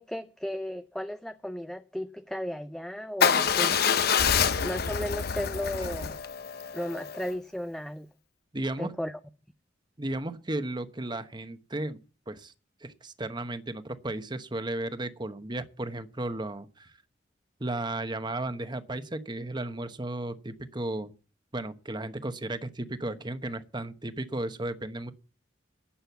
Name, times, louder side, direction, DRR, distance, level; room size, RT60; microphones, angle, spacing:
voice 1, 0.0-3.8 4.6-6.2 6.7-8.1 8.8-9.1, equal, 5° left, 0.5 m, -35 dB
Motorcycle / Engine starting / Idling, 3.2-7.3, left 7 dB, 55° left, 0.8 m, -26 dB
voice 2, 8.5-8.9 10.0-12.0 12.3-12.5 12.8-17.0 17.6-21.1 21.5-25.1, right 2 dB, 25° right, 1.1 m, -34 dB
11.5 x 7.8 x 8.2 m
head